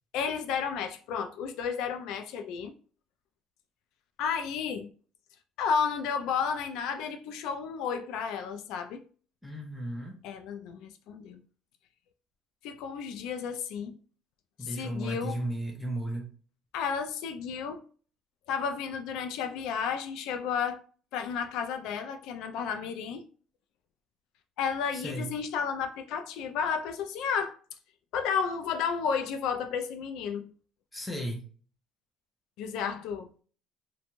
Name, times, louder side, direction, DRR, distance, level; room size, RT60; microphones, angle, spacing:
voice 1, 0.1-2.7 4.2-4.9 5.6-9.0 10.2-11.4 12.6-14.0 14.6-15.4 16.7-17.8 18.5-20.8 21.1-23.3 24.6-27.6 28.1-30.5 32.6-33.3, left 6 dB, 70° left, 0.3 m, -32 dB
voice 2, 9.4-10.2 14.6-16.3 24.9-25.3 30.9-31.4, right 1 dB, 5° left, 0.6 m, -35 dB
2.5 x 2.2 x 2.9 m
cardioid pair, 150°, 0 cm